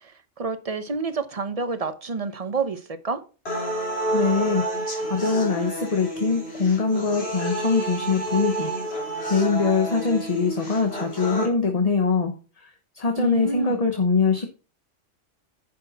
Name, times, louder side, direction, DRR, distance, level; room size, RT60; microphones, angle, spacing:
voice 1, 0.0-3.2 13.2-13.8, right 4 dB, 30° right, 1.0 m, -29 dB
sound 1, 3.5-11.5, right 1 dB, 55° left, 3.6 m, -29 dB
voice 2, 4.1-4.7 5.1-8.7 9.2-14.5, left 4 dB, 35° left, 1.1 m, -23 dB
10.0 x 6.7 x 4.1 m
omnidirectional pair, 1.3 m